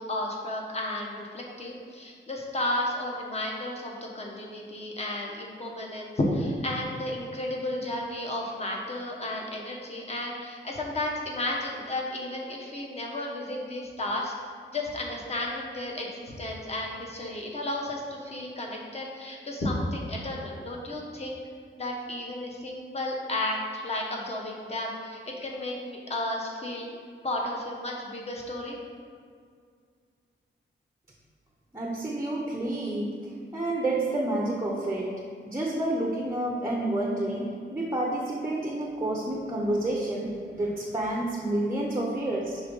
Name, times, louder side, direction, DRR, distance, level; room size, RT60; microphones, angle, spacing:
voice 1, 0.0-14.3 14.7-21.4 21.8-26.9 27.2-28.8, left 1 dB, 30° left, -1 dB, 1.0 m, -33 dB
voice 2, 31.7-33.2 33.5-42.6, right 1 dB, 15° right, -2 dB, 0.6 m, -29 dB
5.5 x 3.6 x 5.3 m, 2.1 s
wide cardioid pair, 145°, 20 cm